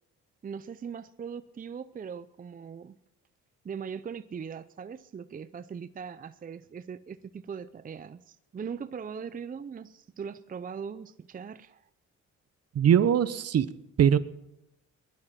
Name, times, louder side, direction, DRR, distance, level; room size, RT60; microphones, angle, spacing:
voice 1, 0.4-3.0 3.6-11.9, right 6 dB, 30° right, 13 dB, 0.6 m, -40 dB
voice 2, 12.7-13.7 14.0-14.2, right 9 dB, 55° right, 15 dB, 0.9 m, -21 dB
20.0 x 11.5 x 5.8 m, 0.86 s
cardioid pair, 90°, 30 cm